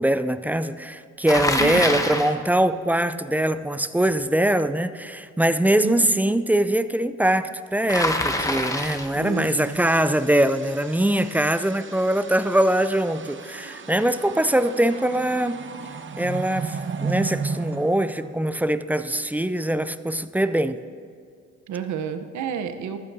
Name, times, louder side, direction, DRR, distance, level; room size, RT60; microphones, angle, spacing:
voice 1, 0.0-15.6 16.2-20.8, right 1 dB, 5° right, 12 dB, 0.3 m, -22 dB
Bicycle, 1.3-2.4 7.9-9.2, left 1 dB, 10° left, 1.0 m, -25 dB
voice 2, 1.6-2.0 5.8-6.2 9.1-9.8 21.7-23.0, right 7 dB, 70° right, 8 dB, 0.9 m, -30 dB
sound 1, 8.3-18.9, right 5 dB, 40° right, 0.8 m, -35 dB
14.5 x 12.5 x 2.7 m, 2.3 s
cardioid pair, 90°, 30 cm